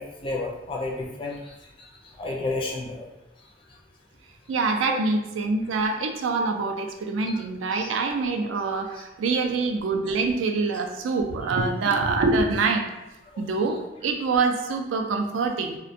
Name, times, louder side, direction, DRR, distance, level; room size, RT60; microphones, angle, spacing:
voice 1, 0.0-1.9 2.2-3.1 4.9-5.0 7.3-7.4 7.7-7.9 8.9-9.0 13.3-13.4, left 2 dB, 25° left, -2 dB, 0.3 m, -32 dB
voice 2, 4.5-12.8 13.4-15.8, right 3 dB, 90° right, 4 dB, 0.3 m, -25 dB
2.4 x 2.1 x 2.6 m, 0.97 s
head